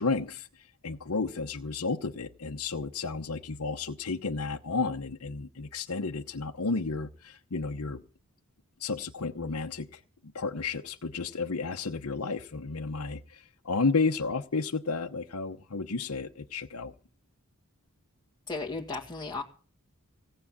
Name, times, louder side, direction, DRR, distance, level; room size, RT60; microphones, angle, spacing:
voice 1, 0.0-8.0 8.8-10.0 10.3-16.9, left 4 dB, 80° left, 2 dB, 1.0 m, -32 dB
voice 2, 18.5-19.4, left 3 dB, 15° left, -1 dB, 1.8 m, -35 dB
17.5 x 9.0 x 7.3 m, 0.40 s
head